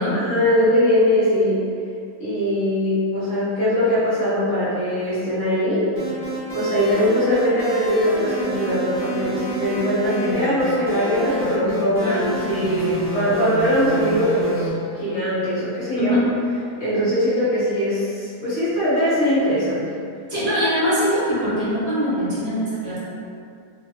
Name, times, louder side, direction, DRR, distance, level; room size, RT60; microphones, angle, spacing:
voice 1, 0.1-1.6 2.2-5.9 6.5-16.2 16.8-19.9, equal, 55° left, -12 dB, 1.5 m, -21 dB
sound 1, 6.0-14.7, equal, 30° left, 1.6 m, -29 dB
voice 2, 15.9-16.3 20.3-23.0, equal, 45° right, -10 dB, 1.1 m, -22 dB
3.8 x 2.8 x 2.8 m, 2.4 s
omnidirectional pair, 1.8 m